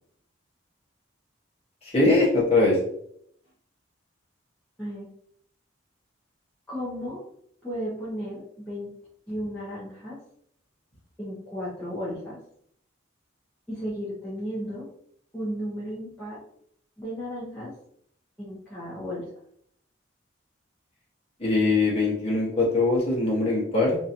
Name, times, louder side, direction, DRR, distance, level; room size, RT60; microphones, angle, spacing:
voice 1, 1.8-2.8 21.4-24.0, left 2 dB, 30° left, -5 dB, 1.3 m, -22 dB
voice 2, 6.7-7.2 7.6-8.9 9.3-10.2 11.2-12.4 13.7-14.9 15.3-16.4 17.0-17.7 18.4-19.2, equal, 5° left, -10 dB, 0.9 m, -34 dB
3.8 x 3.0 x 2.8 m, 0.67 s
head